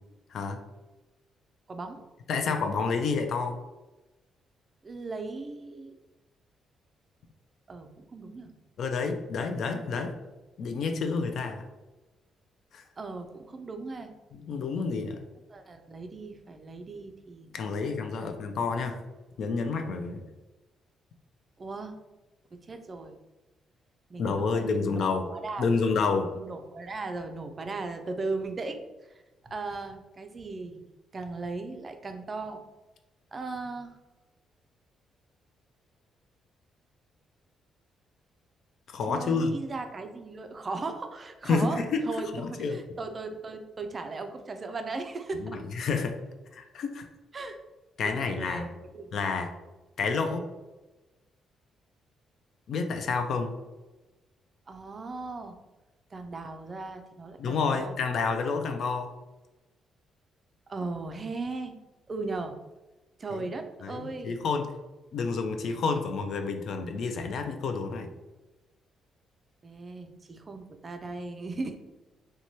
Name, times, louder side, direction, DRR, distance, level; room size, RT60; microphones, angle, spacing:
voice 1, 1.7-2.0 4.8-5.9 7.7-8.5 9.9-10.1 13.0-14.1 15.5-17.9 18.2-18.3 21.6-22.0 22.5-23.2 24.1-25.7 26.3-29.1 29.5-30.8 31.1-32.6 33.3-34.0 39.1-42.3 42.6-45.6 47.3-47.6 48.0-49.1 54.7-55.6 56.1-58.0 60.7-61.8 62.1-62.6 63.2-64.4 69.6-71.8, right 3 dB, 35° right, 7 dB, 0.3 m, -37 dB
voice 2, 2.3-3.6 8.8-10.1 10.6-11.6 12.7-12.8 14.3-15.2 17.5-19.0 19.4-20.2 24.2-25.3 25.6-26.3 38.9-39.5 41.5-42.0 42.3-42.8 45.4-46.2 46.5-47.1 48.0-48.7 49.1-49.5 50.0-50.5 52.7-53.5 57.4-59.1 63.3-63.5 63.8-64.7 65.1-68.1, left 4 dB, 65° left, 6 dB, 0.3 m, -29 dB
2.9 x 2.2 x 2.7 m, 1.1 s
cardioid pair, 90°, 0 cm